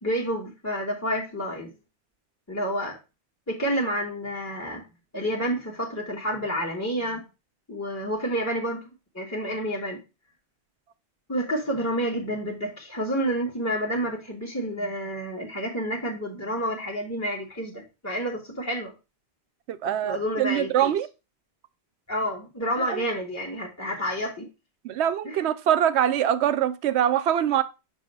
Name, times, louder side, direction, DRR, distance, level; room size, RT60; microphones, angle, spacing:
voice 1, 0.0-1.7 2.5-3.0 3.5-4.8 5.1-7.2 7.7-8.8 9.1-10.0 11.3-18.9 19.8-20.9 22.1-24.5 25.2-25.4, equal, 15° left, 1.1 m, -29 dB
voice 2, 19.7-21.1 22.8-23.0 24.8-27.6, right 10 dB, 85° right, 0.9 m, -24 dB
6.7 x 2.8 x 5.3 m
omnidirectional pair, 1.1 m